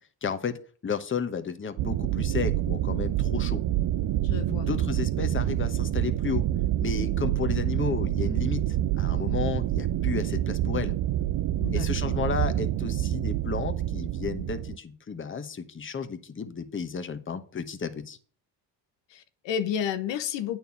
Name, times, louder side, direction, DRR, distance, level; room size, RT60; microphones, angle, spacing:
voice 1, 0.2-0.6 0.8-3.6 4.7-6.4 6.8-10.9 11.7-18.2, left 6 dB, 25° left, 1.1 m, -33 dB
sound 1, 1.8-14.8, right 13 dB, 55° right, 0.5 m, -27 dB
voice 2, 4.2-4.7 11.6-12.2 19.1-20.6, left 9 dB, 80° left, 1.2 m, -31 dB
9.1 x 4.6 x 7.0 m
cardioid pair, 90°, 43 cm